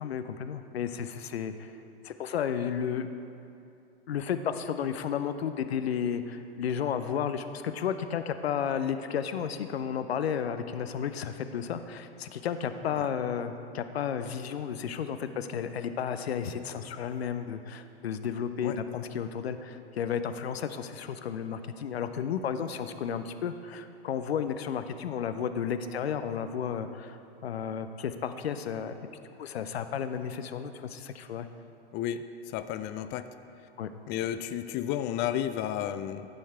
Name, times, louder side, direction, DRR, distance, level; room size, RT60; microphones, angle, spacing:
voice 1, 0.0-1.7 2.0-3.1 4.1-27.2 27.4-28.9 29.4-31.5 33.8-33.9, left 8 dB, 90° left, 9 dB, 0.5 m, -33 dB
voice 2, 31.9-32.2 32.5-33.2 34.1-36.3, left 11 dB, 35° left, 10 dB, 0.4 m, -32 dB
12.0 x 4.5 x 4.4 m, 2.6 s
hypercardioid pair, 95°, 30 cm